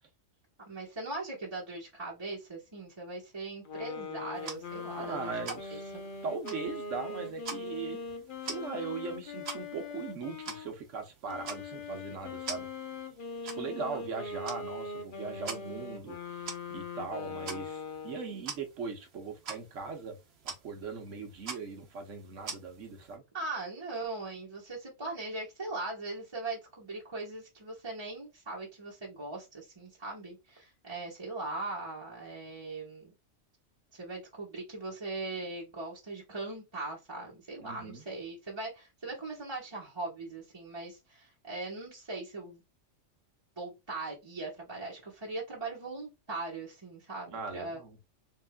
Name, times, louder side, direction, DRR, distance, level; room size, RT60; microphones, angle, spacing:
voice 1, 0.7-5.4 5.7-5.8 13.9-14.0 23.3-33.1 33.9-42.6 43.6-47.8, right 2 dB, 25° right, 1.1 m, -40 dB
sound 1, 3.6-10.7 11.3-18.4, left 4 dB, 50° left, 0.8 m, -41 dB
sound 2, 4.3-23.2, right 4 dB, 60° right, 1.2 m, -47 dB
voice 2, 5.0-5.8 6.2-8.0 8.4-12.7 13.4-16.4 16.7-20.2 20.4-23.2 37.6-38.0 47.3-48.0, right 4 dB, 80° right, 1.4 m, -39 dB
3.8 x 3.6 x 2.2 m
omnidirectional pair, 1.3 m